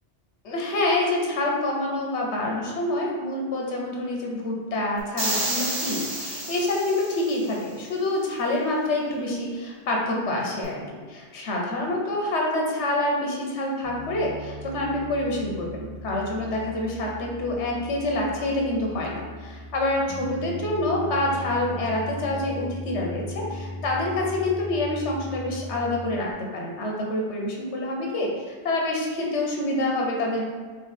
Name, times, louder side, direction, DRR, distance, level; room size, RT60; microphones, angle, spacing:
voice 1, 0.4-10.8 11.1-30.4, left 2 dB, 80° left, -1 dB, 1.1 m, -27 dB
sound 1, 5.2-7.5, right 1 dB, 80° right, 1.8 m, -30 dB
Piano, 13.8-26.3, equal, 15° right, 0.9 m, -38 dB
3.2 x 3.1 x 3.9 m, 1.5 s
omnidirectional pair, 1.2 m